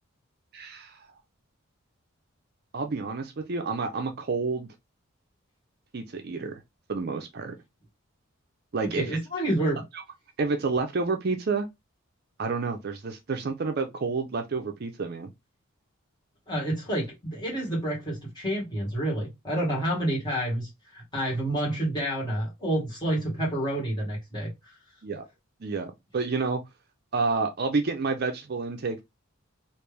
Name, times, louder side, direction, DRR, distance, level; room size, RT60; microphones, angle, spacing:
voice 1, 0.5-1.1 2.7-4.7 5.9-6.6 6.9-7.5 8.7-9.2 9.9-10.0 10.4-11.7 12.4-15.3 25.0-25.3 25.6-26.6 27.1-29.0, right 4 dB, 45° right, 0.4 m, -29 dB
voice 2, 8.9-9.8 16.5-24.7, right 1 dB, 20° left, 1.6 m, -29 dB
3.3 x 2.5 x 3.2 m
head